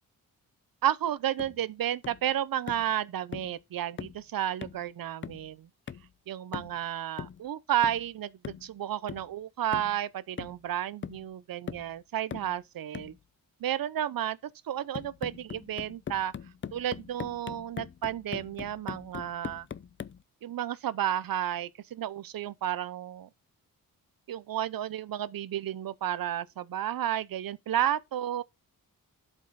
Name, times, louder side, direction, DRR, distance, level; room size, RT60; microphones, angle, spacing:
voice 1, 0.8-5.7 6.3-13.1 13.6-14.4 14.6-16.3 16.7-19.7 20.4-23.3 24.3-28.4, right 11 dB, 70° right, 0.7 m, -32 dB
sound 1, 1.4-1.6 2.0-2.3 2.7-2.9 3.3-3.6 4.0-4.2 4.6-4.9 5.2-5.5 5.9-6.1 6.5-6.8 7.2-7.4 7.8-8.1 8.4-8.7 9.1-9.3 9.7-10.0 10.4-10.7 11.0-11.3 11.7-11.9 12.3-12.6 12.9-13.2 14.9-20.2, left 7 dB, 35° left, 0.5 m, -41 dB
12.0 x 5.4 x 4.1 m
wide cardioid pair, 135°, 36 cm